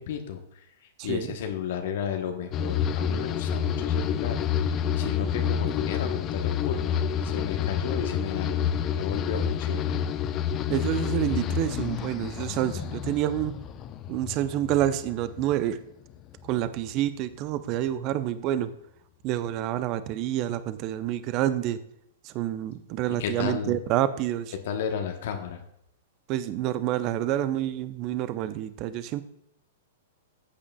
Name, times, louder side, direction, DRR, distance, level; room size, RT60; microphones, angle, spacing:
voice 1, 0.0-10.0 23.2-23.8 24.6-25.6, left 8 dB, 55° left, 5 dB, 1.0 m, -33 dB
sound 1, 2.5-15.8 16.1-16.8, left 8 dB, 30° left, 0.6 m, -29 dB
voice 2, 10.7-13.6 14.1-15.8 16.4-18.7 19.2-21.8 22.2-24.5 26.3-29.2, right 12 dB, 40° right, 13 dB, 0.6 m, -28 dB
14.5 x 8.6 x 2.3 m, 0.77 s
figure-of-eight pair, 105°, 0 cm